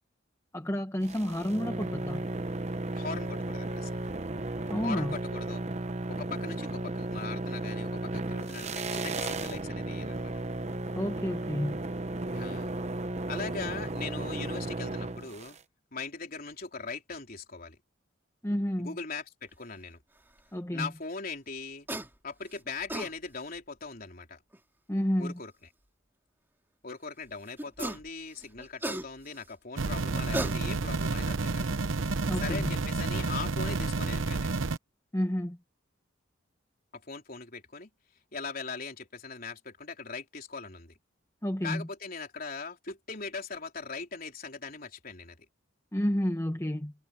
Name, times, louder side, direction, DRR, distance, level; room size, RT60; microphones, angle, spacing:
voice 1, 0.5-2.3 4.7-5.1 10.9-11.8 18.4-19.0 20.5-20.9 24.9-25.4 32.3-32.8 35.1-35.6 41.4-41.9 45.9-46.9, equal, 15° left, 1.1 m, -30 dB
sound 1, 1.0-15.6, right 2 dB, 35° right, 0.9 m, -34 dB
voice 2, 2.9-4.1 4.8-5.6 6.1-10.4 12.3-12.7 13.3-15.6 15.9-17.8 18.8-20.0 20.7-21.9 22.2-24.4 25.2-25.5 26.8-31.8 32.4-34.6 36.9-37.9 38.3-40.9 41.6-45.5, left 4 dB, 45° left, 3.9 m, -40 dB
sound 2, 21.9-22.1 22.7-23.1 24.5-24.6 27.6-28.1 28.4-29.4 30.1-31.0, right 1 dB, 10° right, 2.6 m, -35 dB
sound 3, 29.8-34.8, right 3 dB, 80° right, 0.9 m, -30 dB
head